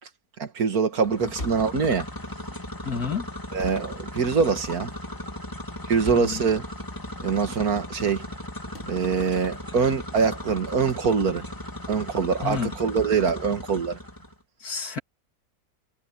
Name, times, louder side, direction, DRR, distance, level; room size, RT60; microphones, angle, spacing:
voice 1, 0.4-2.1 3.5-4.9 5.9-6.6 7.2-8.3 8.9-11.4 11.9-14.0, right 5 dB, 75° right, 2.2 m, -24 dB
sound 1, 1.0-14.3, left 1 dB, 15° left, 2.7 m, -37 dB
sound 2, 1.4-1.8 3.6-3.9 6.1-6.4 8.8-9.0 10.9-11.1 13.0-13.2, left 1 dB, 35° left, 4.3 m, -37 dB
voice 2, 2.8-3.3 6.1-6.5 12.4-12.7 14.6-15.0, left 6 dB, 75° left, 2.9 m, -30 dB
omnidirectional pair, 1.6 m